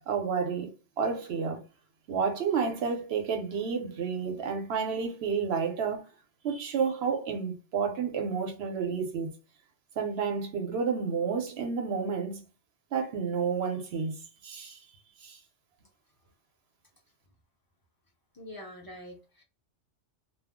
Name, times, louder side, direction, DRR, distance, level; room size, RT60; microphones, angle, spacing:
voice 1, 0.1-0.7 1.0-1.6 2.1-6.1 6.4-9.3 10.0-12.4 12.9-14.1 14.4-14.8 15.2-15.4, right 6 dB, 65° right, 0.9 m, -30 dB
voice 2, 18.3-19.4, left 1 dB, 25° left, 0.5 m, -45 dB
2.3 x 2.0 x 3.5 m
omnidirectional pair, 1.2 m